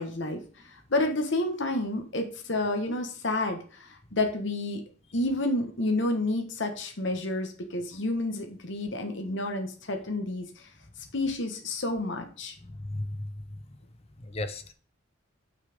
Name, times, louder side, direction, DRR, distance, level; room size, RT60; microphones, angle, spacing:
voice 1, 0.0-4.8 5.1-10.7 11.1-12.6, left 2 dB, 65° left, 4 dB, 1.4 m, -30 dB
voice 2, 12.6-13.2 14.2-14.7, left 2 dB, 30° left, 10 dB, 0.9 m, -35 dB
6.5 x 5.8 x 5.1 m, 0.41 s
head